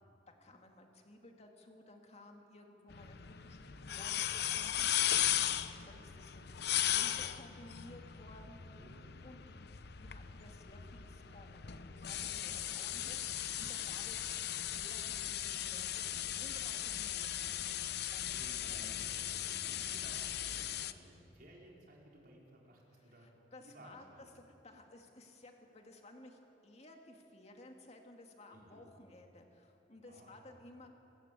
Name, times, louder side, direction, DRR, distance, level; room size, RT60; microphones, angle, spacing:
voice 1, 0.4-6.4 6.7-8.9 9.2-9.4 10.0-11.6 11.9-14.3 14.6-18.4 23.0-30.9, left 2 dB, 35° left, 3 dB, 2.2 m, -57 dB
sound 1, 2.9-20.9, left 11 dB, 60° left, 0.7 m, -37 dB
voice 2, 4.8-5.5 8.7-9.3 13.7-14.0 17.9-23.3 23.6-24.3 28.5-28.9 30.1-30.5, right 1 dB, 55° right, -3 dB, 4.6 m, -57 dB
26.5 x 14.0 x 8.3 m, 2.9 s
head